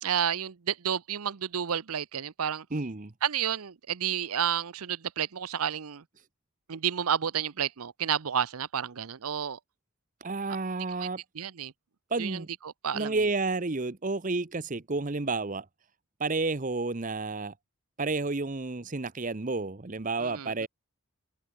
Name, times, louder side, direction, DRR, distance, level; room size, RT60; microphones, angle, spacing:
voice 1, 0.0-2.7 3.2-6.0 6.7-9.6 11.0-11.1 11.3-11.7 12.2-13.2 20.2-20.7, right 8 dB, 80° right, 0.7 m, -31 dB
voice 2, 2.7-3.1 10.2-11.2 12.1-12.5 12.9-15.7 16.2-17.5 18.0-20.7, right 3 dB, 35° right, 0.8 m, -31 dB
head